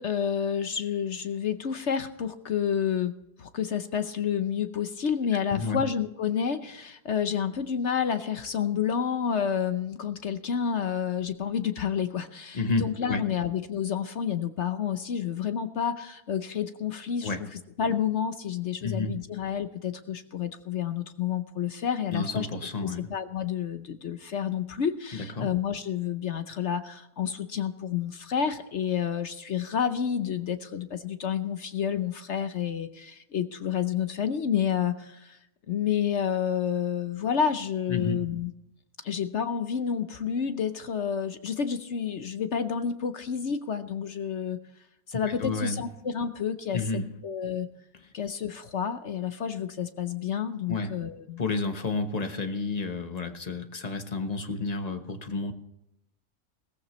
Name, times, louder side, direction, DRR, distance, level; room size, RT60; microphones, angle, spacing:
voice 1, 0.0-17.4 17.8-22.5 22.8-35.4 35.7-38.5 39.0-44.6 45.1-47.7 48.1-51.4, left 8 dB, 55° left, 10 dB, 0.9 m, -29 dB
voice 2, 5.5-5.8 12.5-13.2 17.2-17.4 18.8-19.2 22.1-23.1 25.1-25.5 37.9-38.2 45.2-45.8 46.7-47.1 50.7-50.9 51.4-55.5, left 3 dB, 30° left, 6 dB, 1.0 m, -30 dB
17.5 x 15.0 x 3.1 m, 0.87 s
omnidirectional pair, 1.7 m